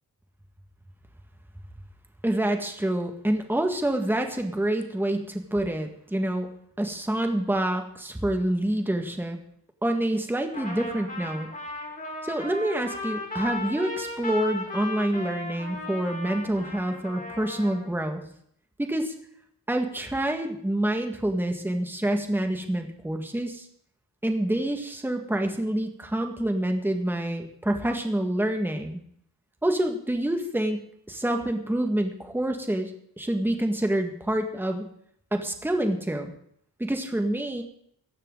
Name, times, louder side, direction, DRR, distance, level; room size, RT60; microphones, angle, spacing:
voice 1, 2.2-6.5 6.8-9.4 9.8-11.5 12.2-18.2 18.8-19.1 19.7-23.6 24.2-29.0 29.6-32.9 33.2-34.9 35.3-36.3 36.8-37.6, right 1 dB, 5° right, 4 dB, 1.7 m, -27 dB
Trumpet, 10.5-17.9, left 2 dB, 20° left, 4.2 m, -36 dB
17.0 x 15.0 x 3.9 m, 0.66 s
wide cardioid pair, 155°, 37 cm